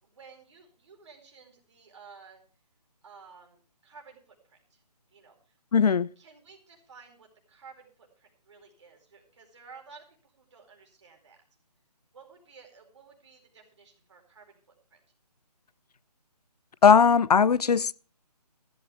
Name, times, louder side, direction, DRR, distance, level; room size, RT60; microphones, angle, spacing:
voice 1, 0.0-2.4 3.0-4.8 5.1-5.5 6.2-11.4 12.1-15.0, right 5 dB, 45° right, 4.5 m, -53 dB
voice 2, 5.7-6.1 16.8-17.9, left 6 dB, 70° left, 0.5 m, -19 dB
15.0 x 12.5 x 3.4 m
figure-of-eight pair, 165°, 21 cm